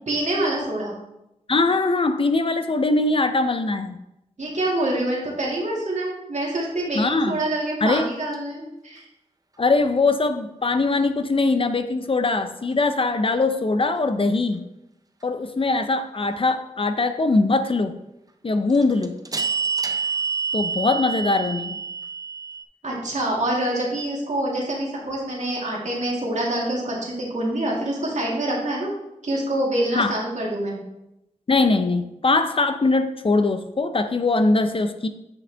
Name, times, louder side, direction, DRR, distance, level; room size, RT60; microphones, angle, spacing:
voice 1, 0.1-1.0 4.4-9.0 22.8-28.9 29.2-30.8, right 1 dB, 65° right, -3 dB, 2.1 m, -26 dB
voice 2, 1.5-4.0 6.9-7.4 7.8-8.1 9.6-14.6 15.2-18.0 18.4-19.1 20.5-21.8 29.9-30.1 31.5-35.1, left 3 dB, 45° left, 9 dB, 0.5 m, -21 dB
sound 1, 8.3-8.4 18.7-22.6, right 6 dB, 30° right, 0.6 m, -27 dB
8.3 x 5.1 x 3.4 m, 0.88 s
wide cardioid pair, 65°, 13 cm